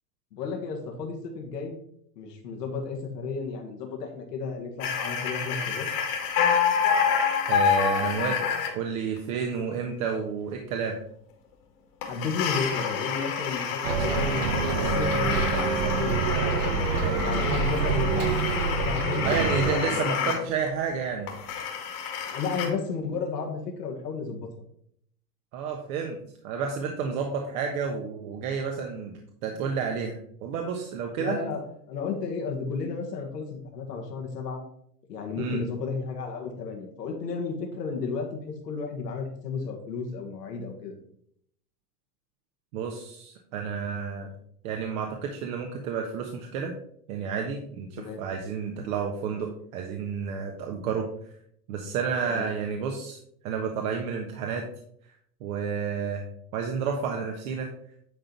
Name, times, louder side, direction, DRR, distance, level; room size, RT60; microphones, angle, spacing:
voice 1, 0.3-1.8 2.2-5.9 12.1-16.9 17.2-18.4 18.8-20.5 22.3-24.5 31.2-34.6 35.1-40.9 48.0-48.2 52.3-52.4, left 5 dB, 80° left, 2 dB, 1.9 m, -33 dB
sound 1, 4.8-8.7 12.0-20.4 20.7-20.8 21.3-22.7, left 7 dB, 60° left, 2.2 m, -28 dB
voice 2, 7.5-8.5 8.7-11.0 19.2-21.3 25.5-26.2 26.4-31.4 35.4-35.6 42.7-44.3 44.6-46.7 47.1-51.1 51.7-53.2 53.4-54.6 55.4-56.2 56.5-57.7, right 6 dB, 55° right, 2 dB, 1.3 m, -30 dB
Bus, 13.8-19.8, right 5 dB, 75° right, 1.1 m, -27 dB
10.0 x 3.9 x 4.6 m, 0.69 s
hypercardioid pair, 110°, 48 cm